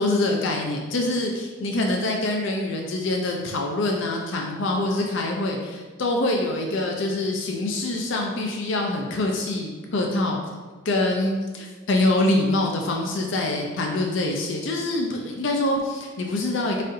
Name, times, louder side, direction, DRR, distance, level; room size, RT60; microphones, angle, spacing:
voice 1, 0.0-10.4 10.8-16.8, left 2 dB, 65° left, 1 dB, 0.4 m, -25 dB
4.1 x 3.7 x 2.6 m, 1.3 s
head